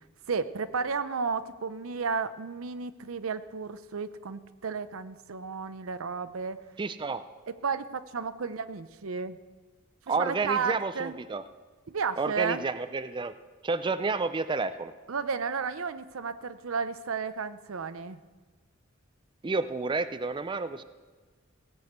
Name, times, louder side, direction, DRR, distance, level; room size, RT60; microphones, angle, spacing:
voice 1, 0.3-6.6 7.5-9.4 10.2-11.2 11.9-12.7 15.1-18.2, right 5 dB, 80° right, 13 dB, 0.6 m, -33 dB
voice 2, 6.8-7.2 10.1-11.4 12.2-13.3 13.6-14.9 19.4-20.8, right 3 dB, 25° right, 12 dB, 0.4 m, -30 dB
17.0 x 6.2 x 8.0 m, 1.4 s
head